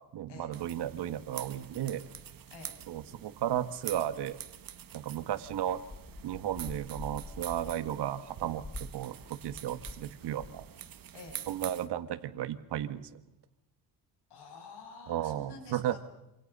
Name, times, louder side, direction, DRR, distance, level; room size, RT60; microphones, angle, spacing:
voice 1, 0.1-2.0 2.9-4.4 4.9-5.8 6.2-10.6 11.5-13.2 15.1-16.0, right 11 dB, 70° right, 11 dB, 1.8 m, -34 dB
sound 1, 0.5-11.9, right 10 dB, 55° right, 1.9 m, -46 dB
sound 2, 5.9-10.1 10.3-10.7, left 2 dB, 15° left, 1.0 m, -46 dB
voice 2, 14.3-16.0, left 3 dB, 65° left, 5 dB, 6.6 m, -49 dB
27.0 x 27.0 x 5.5 m, 0.90 s
cardioid pair, 135°, 42 cm